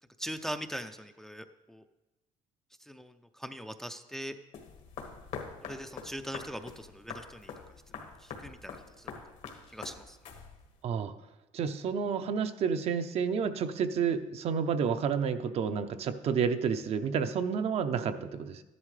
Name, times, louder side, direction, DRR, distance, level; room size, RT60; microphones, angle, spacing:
voice 1, 0.2-1.8 2.8-4.4 5.7-7.5 8.0-9.1 9.7-10.2, equal, 5° left, 8 dB, 0.4 m, -41 dB
sound 1, 4.5-10.8, left 6 dB, 70° left, 1.6 m, -45 dB
voice 2, 10.8-11.1 11.5-18.6, right 6 dB, 50° right, 9 dB, 0.6 m, -30 dB
13.5 x 11.0 x 3.3 m, 1.0 s
cardioid pair, 130°, 13 cm